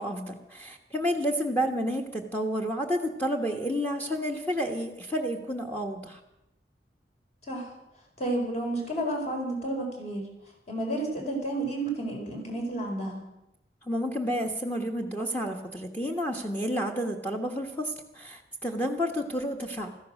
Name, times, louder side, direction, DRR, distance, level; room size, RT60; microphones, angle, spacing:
voice 1, 0.0-6.2 13.9-19.9, equal, 10° left, 3 dB, 1.2 m, -30 dB
voice 2, 8.2-10.2 10.7-13.2, right 1 dB, 40° left, 1 dB, 4.6 m, -31 dB
15.5 x 14.5 x 6.4 m, 0.88 s
head